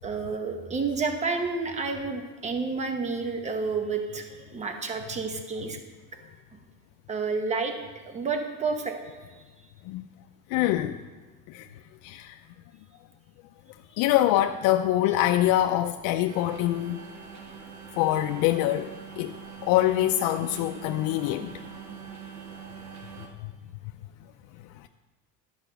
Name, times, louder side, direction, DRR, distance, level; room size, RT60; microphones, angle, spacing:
voice 1, 0.0-5.8 7.1-7.7 8.0-8.9, right 4 dB, 20° right, 0.9 m, -30 dB
voice 2, 10.5-11.0 11.5-11.7 12.0-12.4 14.0-17.0 18.0-19.4 19.6-21.7 23.4-23.5, left 13 dB, 90° left, 0.5 m, -24 dB
sound 1, 16.3-23.3, right 6 dB, 55° right, 1.7 m, -43 dB
12.5 x 4.9 x 6.8 m
cardioid pair, 155°, 33 cm